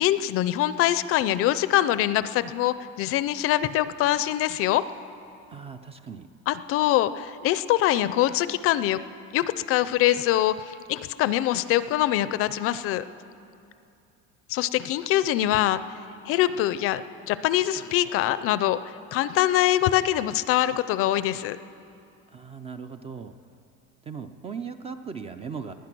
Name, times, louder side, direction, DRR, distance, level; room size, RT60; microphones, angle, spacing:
voice 1, 0.0-4.8 6.5-9.0 9.3-13.0 14.5-15.8 16.3-21.6, left 13 dB, 45° left, 15 dB, 0.4 m, -24 dB
voice 2, 5.5-6.3 22.3-23.4 24.0-25.7, right 6 dB, 20° right, 9 dB, 0.3 m, -38 dB
19.5 x 10.5 x 6.0 m, 2.7 s
cardioid pair, 155°, 32 cm